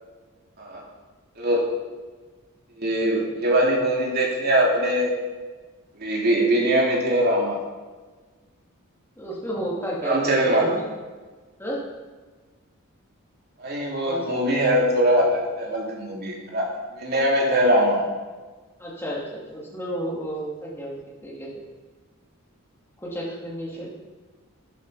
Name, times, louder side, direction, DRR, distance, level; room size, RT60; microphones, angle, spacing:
voice 1, 1.4-1.7 2.8-5.1 6.0-7.6 10.0-10.7 13.6-16.7 16.9-18.1, right 1 dB, 45° right, -2 dB, 3.1 m, -22 dB
voice 2, 9.2-10.8 11.6-11.8 14.0-14.4 18.8-20.9 21.2-21.5 23.0-23.9, equal, 10° left, -5 dB, 3.1 m, -31 dB
12.5 x 10.5 x 5.1 m, 1.4 s
head